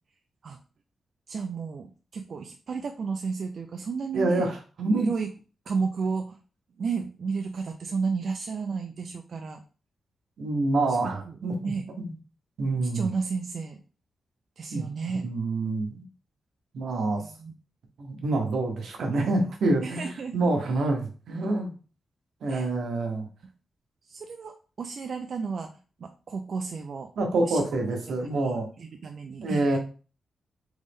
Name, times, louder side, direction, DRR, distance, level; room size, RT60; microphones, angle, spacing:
voice 1, 1.3-4.5 5.0-5.3 5.7-6.4 6.8-9.6 11.0-11.1 11.6-11.9 12.9-13.8 14.6-15.3 17.2-17.5 19.8-20.5 22.5-22.7 24.1-25.7 26.0-27.1 27.4-27.6 28.2-29.8, right 5 dB, 55° right, 5 dB, 0.4 m, -32 dB
voice 2, 4.1-5.1 10.4-12.1 12.6-13.1 14.7-14.9 15.2-16.0 16.7-17.2 18.0-21.7 22.4-23.3 27.2-28.7 29.4-29.8, right 2 dB, 80° right, 3 dB, 1.2 m, -27 dB
3.9 x 3.6 x 3.5 m, 0.36 s
wide cardioid pair, 130°, 0 cm